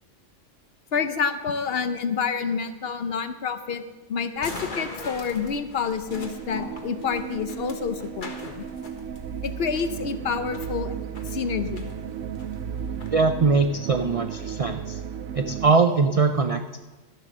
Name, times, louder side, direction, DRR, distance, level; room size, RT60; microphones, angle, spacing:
voice 1, 0.9-3.8 4.1-8.6 9.4-10.9 11.3-11.9, left 6 dB, 55° left, 11 dB, 0.8 m, -28 dB
sound 1, 4.4-13.1, left 3 dB, 40° left, 1.4 m, -42 dB
sound 2, 6.1-15.7, right 8 dB, 80° right, 0.9 m, -34 dB
voice 2, 13.1-14.9 15.3-16.8, right 4 dB, 65° right, 8 dB, 0.3 m, -22 dB
13.0 x 7.6 x 6.3 m, 1.2 s
omnidirectional pair, 1.3 m